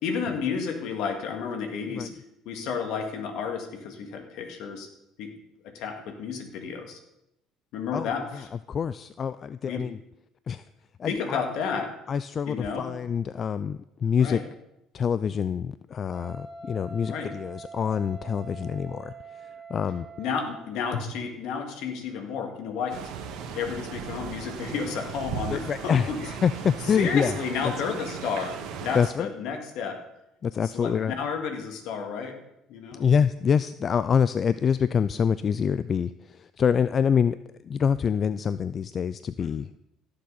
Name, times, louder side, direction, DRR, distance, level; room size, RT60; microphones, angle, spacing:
voice 1, 0.0-4.9 5.2-5.3 5.6-7.0 7.7-8.5 9.6-9.9 11.0-11.9 12.5-12.9 14.2-14.4 17.0-17.3 20.2-23.1 23.4-26.2 26.8-28.5 28.8-30.0 30.6-32.4 32.7-33.0 39.4-39.5, left 6 dB, 70° left, 4 dB, 1.9 m, -32 dB
voice 2, 8.7-10.0 10.5-10.6 11.0-11.4 12.1-14.4 14.9-20.1 25.5-27.3 28.9-29.3 30.4-31.1 33.0-37.3 37.6-39.7, left 7 dB, 40° left, 14 dB, 0.3 m, -26 dB
Wind instrument woodwind instrument, 16.1-20.8, right 4 dB, 10° right, 4.2 m, -44 dB
sound 1, 22.9-29.1, right 7 dB, 70° right, 1.5 m, -37 dB
17.0 x 6.7 x 4.0 m, 0.86 s
supercardioid pair, 80°, 0 cm